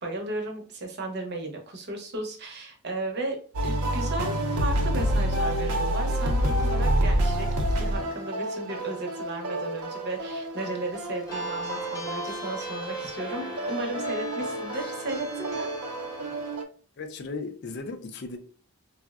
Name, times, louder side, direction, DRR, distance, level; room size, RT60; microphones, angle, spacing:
voice 1, 0.0-3.4 3.6-15.7, right 2 dB, 50° right, 0.7 m, -35 dB
sound 1, 3.5-16.6, right 1 dB, 85° right, 0.6 m, -28 dB
sound 2, 11.3-16.6, left 3 dB, 15° left, 0.7 m, -40 dB
voice 2, 17.0-18.4, left 3 dB, 50° left, 0.4 m, -36 dB
3.4 x 2.0 x 2.3 m
head